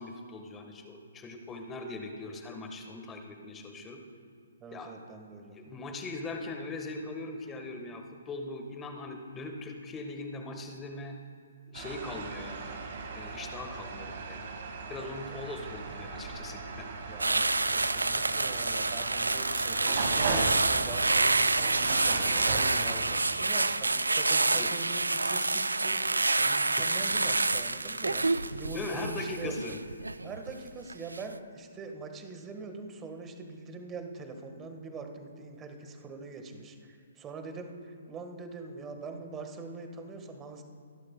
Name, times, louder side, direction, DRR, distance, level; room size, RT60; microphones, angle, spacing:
voice 1, 0.0-4.0 4.7-5.0 5.5-11.1 11.7-14.5 14.9-16.9 24.5-24.7 28.7-29.8, left 2 dB, 15° left, 4 dB, 1.3 m, -40 dB
voice 2, 4.6-5.6 17.1-26.0 26.4-28.2 28.5-29.5 30.2-40.6, right 3 dB, 15° right, 5 dB, 1.4 m, -43 dB
sound 1, 11.7-23.3, right 4 dB, 55° right, 1.9 m, -37 dB
sound 2, 17.2-30.5 30.9-31.2, right 3 dB, 85° right, 0.4 m, -28 dB
20.5 x 11.5 x 2.2 m, 2.5 s
figure-of-eight pair, 135°, 0 cm